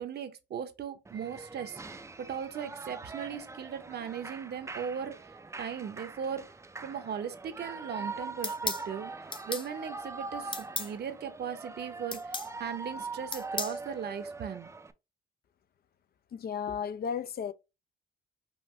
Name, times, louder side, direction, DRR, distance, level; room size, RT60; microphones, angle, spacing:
voice 1, 0.0-5.2 5.6-6.5 6.8-9.1 9.5-14.7, right 8 dB, 55° right, 0.8 m, -38 dB
Shout / Cheering, 1.1-14.9, right 3 dB, 15° right, 0.5 m, -42 dB
sound 1, 8.4-8.9 9.3-9.7 10.5-10.9 12.1-12.5 13.3-13.8, left 3 dB, 25° left, 0.9 m, -34 dB
voice 2, 16.3-17.5, left 7 dB, 50° left, 0.5 m, -34 dB
5.5 x 2.6 x 3.1 m
cardioid pair, 90°, 20 cm